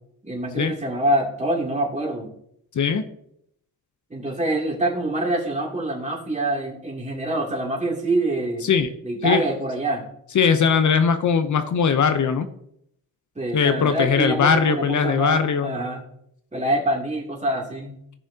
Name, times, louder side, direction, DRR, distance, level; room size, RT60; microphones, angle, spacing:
voice 1, 0.2-2.3 4.1-8.7 9.0-10.0 13.4-16.0 16.5-18.0, right 1 dB, 20° right, -2 dB, 2.7 m, -25 dB
voice 2, 10.3-12.5 13.5-15.8, left 6 dB, 50° left, 10 dB, 0.8 m, -20 dB
15.0 x 6.2 x 2.8 m, 0.72 s
cardioid pair, 80°, 38 cm